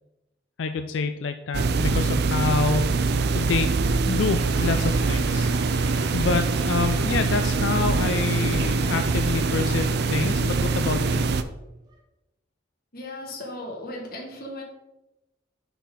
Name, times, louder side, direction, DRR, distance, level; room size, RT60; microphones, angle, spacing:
voice 1, 0.6-3.7 4.1-5.5 6.1-11.2, left 4 dB, 75° left, 9 dB, 0.4 m, -27 dB
sound 1, 1.5-11.4, right 3 dB, 55° right, 0.4 m, -23 dB
Applause, 4.3-11.4 11.9-12.0, right 1 dB, 20° right, 1.6 m, -42 dB
voice 2, 12.9-14.6, left 1 dB, 50° left, -1 dB, 1.6 m, -36 dB
7.1 x 5.8 x 3.7 m, 0.96 s
head